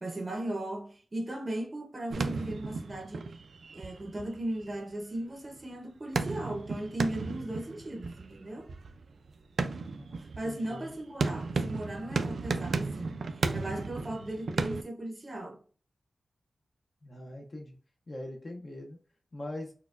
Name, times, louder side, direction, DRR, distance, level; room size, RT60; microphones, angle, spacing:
voice 1, 0.0-3.3 3.7-8.7 10.2-13.2 13.5-15.6, right 1 dB, 25° right, 0.6 m, -37 dB
sound 1, 2.1-5.2 5.5-5.6 6.1-14.8, right 4 dB, 70° right, 0.4 m, -34 dB
voice 2, 10.4-10.9 17.0-17.8 18.1-19.0 19.3-19.7, left 1 dB, 35° left, 0.6 m, -41 dB
4.2 x 2.2 x 2.4 m
wide cardioid pair, 165°, 0 cm